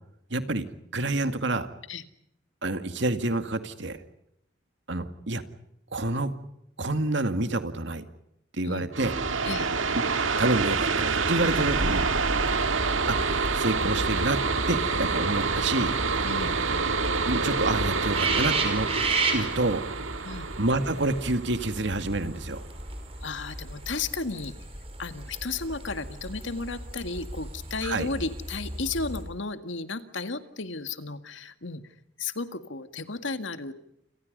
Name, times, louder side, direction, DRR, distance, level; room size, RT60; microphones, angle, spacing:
voice 1, 0.3-0.7 0.9-1.7 2.6-4.0 4.9-5.4 5.9-6.3 6.8-8.1 8.5-9.1 10.2-12.1 13.1-13.2 13.5-14.4 14.7-15.9 17.3-18.9 19.3-19.8 20.6-22.6 27.8-28.1, right 2 dB, 65° right, 9 dB, 2.2 m, -28 dB
sound 1, 8.9-22.3, right 4 dB, 85° right, 1.9 m, -27 dB
sound 2, 11.4-29.2, right 2 dB, 30° right, 5.0 m, -35 dB
voice 2, 16.2-16.5 20.2-20.5 23.2-24.5 25.0-31.8 32.2-33.7, left 3 dB, 75° left, 9 dB, 2.0 m, -34 dB
29.0 x 27.5 x 5.4 m, 0.78 s
head